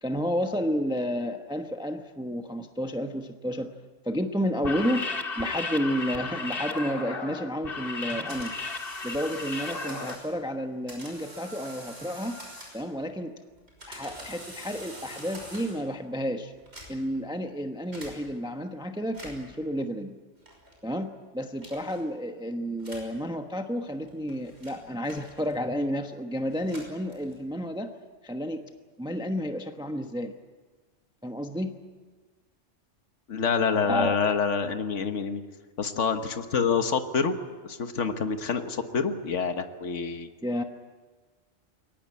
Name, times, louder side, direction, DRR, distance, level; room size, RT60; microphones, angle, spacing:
voice 1, 0.0-3.7 4.0-8.5 9.0-12.4 12.7-13.3 13.9-16.5 16.9-20.2 20.8-27.9 28.2-28.6 29.0-30.3 31.2-31.7 33.8-34.2 40.4-40.6, equal, 5° right, 5 dB, 0.9 m, -31 dB
sound 1, 4.6-10.2, left 3 dB, 50° left, 1.8 m, -34 dB
sound 2, 8.1-10.4 10.9-13.0 13.6-15.9 16.6-17.2 17.9-18.2 19.0-19.6 20.5-20.8 21.6-22.0 22.8-23.2 23.9-25.7 26.5-27.5, right 1 dB, 60° right, 6.2 m, -45 dB
voice 2, 33.3-35.4 35.8-37.4 37.6-40.3, left 5 dB, 80° left, 8 dB, 1.6 m, -27 dB
23.0 x 18.0 x 9.6 m, 1.4 s
omnidirectional pair, 1.3 m